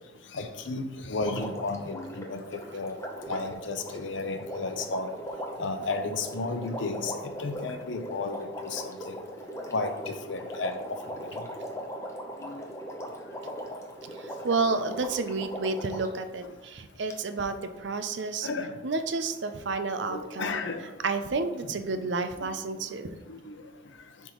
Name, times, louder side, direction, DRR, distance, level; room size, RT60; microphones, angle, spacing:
voice 1, 0.3-3.0 3.3-5.1 5.6-9.1 9.7-11.4 12.4-12.7 16.4-16.5 18.4-18.7 20.1-20.8 21.6-21.8 22.4-22.5 23.3-23.6, left 3 dB, 75° left, 7 dB, 0.7 m, -33 dB
Water, 1.2-16.2 17.1-17.2, equal, 15° left, 0.7 m, -39 dB
voice 2, 14.2-18.5 18.8-20.6 21.0-23.2, right 3 dB, 70° right, 9 dB, 0.5 m, -30 dB
10.0 x 3.6 x 3.0 m, 1.1 s
head